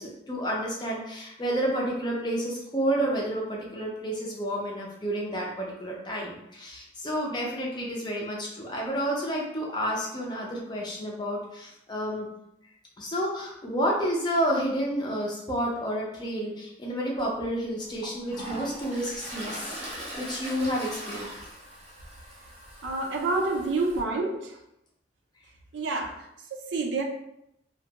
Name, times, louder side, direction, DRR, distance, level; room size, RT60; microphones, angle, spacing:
voice 1, 0.0-12.3 13.0-21.3, equal, 25° left, -2 dB, 0.5 m, -30 dB
Toilet flush, 17.2-17.3 17.8-24.0, equal, 35° right, 0.7 m, -40 dB
voice 2, 22.8-24.6 25.7-27.0, right 3 dB, 75° right, 3 dB, 0.4 m, -28 dB
2.3 x 2.2 x 2.8 m, 0.80 s
head